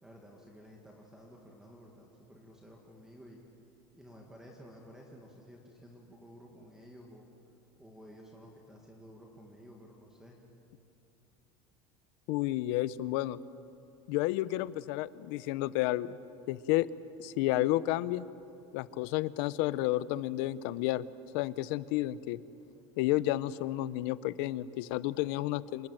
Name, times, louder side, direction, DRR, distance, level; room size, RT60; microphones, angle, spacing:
voice 1, 0.0-3.4 3.9-7.3 7.8-10.4, equal, 5° right, 0 dB, 1.9 m, -53 dB
voice 2, 12.3-13.4 14.1-16.2 16.5-16.9 17.2-18.2 18.7-21.0 21.3-22.4 23.0-25.9, left 16 dB, 65° left, 17 dB, 0.7 m, -31 dB
27.5 x 19.5 x 9.0 m, 2.9 s
cardioid pair, 170°, 14 cm